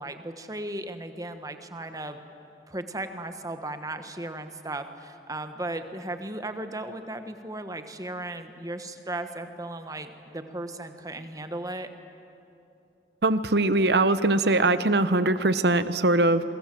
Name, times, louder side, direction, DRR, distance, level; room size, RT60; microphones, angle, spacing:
voice 1, 0.0-2.2 2.7-11.9, right 1 dB, 20° right, 8 dB, 1.2 m, -36 dB
voice 2, 13.2-16.4, right 2 dB, 65° right, 13 dB, 1.0 m, -22 dB
27.0 x 23.5 x 7.6 m, 2.8 s
head